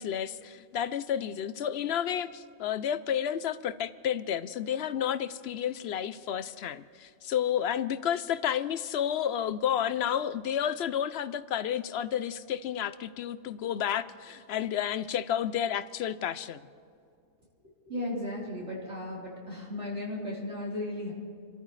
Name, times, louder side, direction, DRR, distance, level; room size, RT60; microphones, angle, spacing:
voice 1, 0.0-16.6, left 9 dB, 65° left, 14 dB, 0.7 m, -31 dB
voice 2, 17.8-21.1, left 1 dB, 60° right, -5 dB, 4.4 m, -35 dB
29.0 x 13.5 x 3.2 m, 2.4 s
omnidirectional pair, 1.3 m